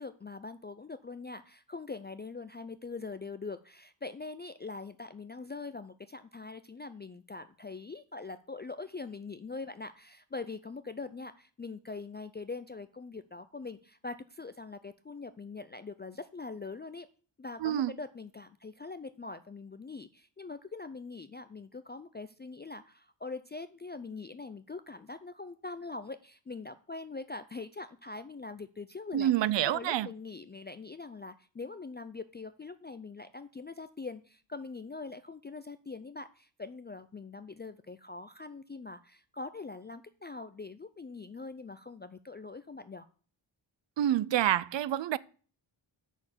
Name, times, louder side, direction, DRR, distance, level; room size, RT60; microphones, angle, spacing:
voice 1, 0.0-17.1 17.4-29.3 29.6-43.1, left 3 dB, 25° left, 0.4 m, -43 dB
voice 2, 17.6-17.9 29.1-30.1 44.0-45.2, right 12 dB, 65° right, 0.5 m, -27 dB
6.7 x 6.4 x 7.2 m
wide cardioid pair, 90°, 49 cm